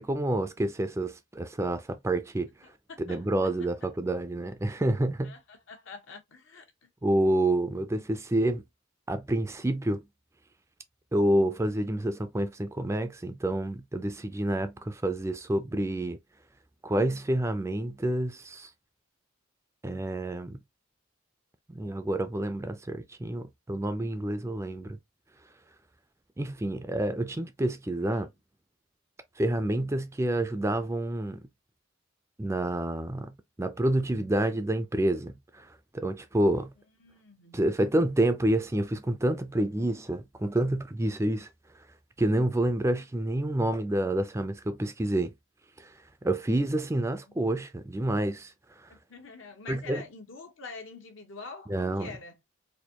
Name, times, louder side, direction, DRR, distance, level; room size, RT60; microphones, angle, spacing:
voice 1, 0.0-2.5 3.1-5.4 7.0-8.6 9.1-10.0 11.1-16.2 16.8-18.7 19.8-20.6 21.7-25.0 26.4-28.3 29.4-31.4 32.4-36.7 37.5-41.5 42.2-45.3 45.8-45.9 46.2-48.9 49.7-50.0 51.7-52.1, right 1 dB, 15° right, 0.4 m, -28 dB
voice 2, 2.9-3.7 5.2-6.9 28.1-28.3 37.0-37.6 48.9-52.4, left 4 dB, 70° left, 1.2 m, -46 dB
4.2 x 2.6 x 2.9 m
head